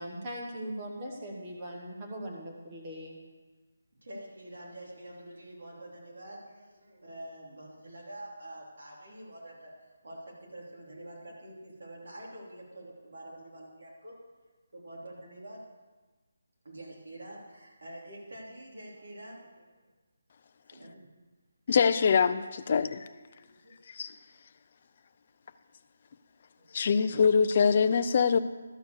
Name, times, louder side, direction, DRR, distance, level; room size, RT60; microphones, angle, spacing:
voice 1, 0.0-3.2, equal, 15° right, -2 dB, 1.2 m, -40 dB
voice 2, 4.0-9.7 10.0-14.1 14.7-15.6 16.6-19.7 20.7-21.0 22.8-23.2 23.5-23.8 26.5-26.9, right 1 dB, 65° right, -3 dB, 3.2 m, -46 dB
voice 3, 21.7-23.1 23.9-24.1 26.7-28.4, left 6 dB, 30° left, 11 dB, 0.3 m, -24 dB
12.5 x 4.8 x 6.6 m, 1.3 s
hypercardioid pair, 175°, 0 cm